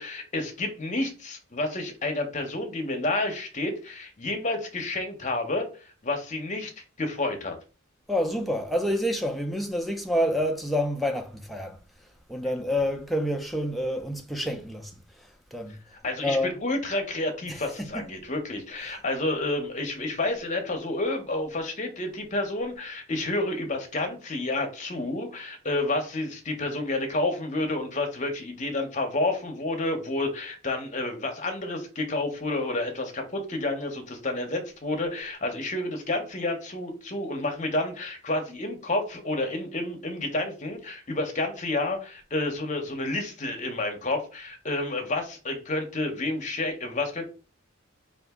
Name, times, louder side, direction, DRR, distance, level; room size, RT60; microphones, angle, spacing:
voice 1, 0.0-6.7 7.0-7.5 15.9-47.2, left 2 dB, 35° left, 0.8 m, -30 dB
voice 2, 8.1-11.8 12.3-14.9 15.5-15.8 16.2-16.6 17.5-18.1 18.8-19.0, equal, ahead, 0.4 m, -28 dB
3.9 x 2.5 x 3.5 m
head